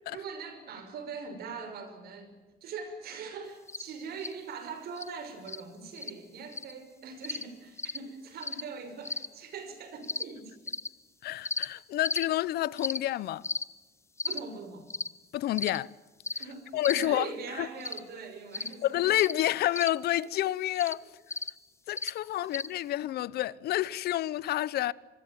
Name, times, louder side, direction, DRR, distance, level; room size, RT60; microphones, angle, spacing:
voice 1, 0.1-10.7 14.2-14.9 16.4-19.0 19.4-19.5 22.4-22.5, right 5 dB, 65° right, 6.0 m, -42 dB
sound 1, 3.7-3.8 4.2-4.3 5.0-5.1 5.5-5.6 6.0-6.1 6.5-6.7 7.2-7.4 7.8-8.0 8.4-8.6 9.0-9.3 10.0-10.2 10.7-10.9 11.4-11.7 12.0-12.2 12.8-13.0 13.4-13.6 14.2-14.4 14.9-15.1 15.6-15.8 16.2-16.5 16.8-17.1 17.8-18.0 18.5-18.7 19.2-19.3 19.7-19.9 20.8-20.9 21.3-21.5 22.0-22.1 22.5-22.7, left 3 dB, 15° left, 1.0 m, -34 dB
voice 2, 11.2-13.4 15.3-15.9 16.7-17.3 17.6-17.7 18.8-21.0 21.9-24.9, left 14 dB, 70° left, 0.8 m, -29 dB
25.0 x 23.0 x 9.2 m
cardioid pair, 110°, 17 cm